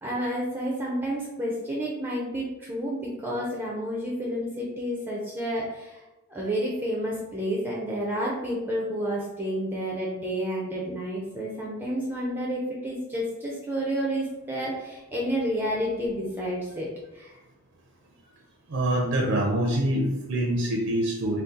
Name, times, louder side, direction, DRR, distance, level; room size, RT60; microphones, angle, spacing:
voice 1, 0.0-6.0 6.3-17.4, equal, 10° right, -4 dB, 0.4 m, -30 dB
voice 2, 18.7-21.4, right 1 dB, 75° right, 0 dB, 0.5 m, -25 dB
2.6 x 2.3 x 3.7 m, 1.0 s
head